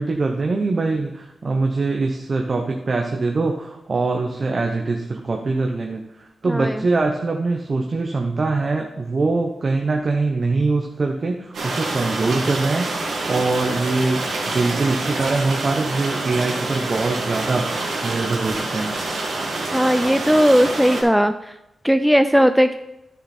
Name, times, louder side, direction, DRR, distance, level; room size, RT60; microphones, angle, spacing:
voice 1, 0.0-19.0, right 3 dB, 45° right, 2 dB, 0.9 m, -23 dB
voice 2, 6.5-6.8 19.7-21.3 21.8-22.7, equal, ahead, 9 dB, 0.4 m, -17 dB
sound 1, 11.5-21.0, right 2 dB, 80° right, 2.0 m, -27 dB
10.0 x 6.6 x 4.3 m, 0.89 s
wide cardioid pair, 90°, 0 cm